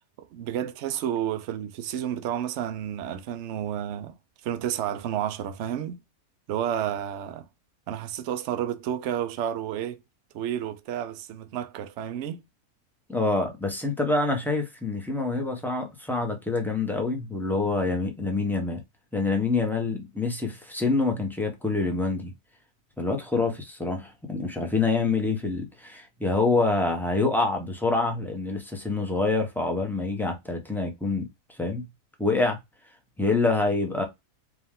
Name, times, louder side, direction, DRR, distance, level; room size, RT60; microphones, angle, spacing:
voice 1, 0.2-4.2 4.4-6.0 6.5-7.5 7.9-10.0 10.3-12.4, right 10 dB, 65° right, 0.8 m, -31 dB
voice 2, 13.1-18.8 19.1-22.3 23.0-31.3 31.6-31.9 32.2-32.6 33.2-34.0, left 3 dB, ahead, 0.8 m, -26 dB
4.8 x 2.6 x 3.7 m
omnidirectional pair, 1.6 m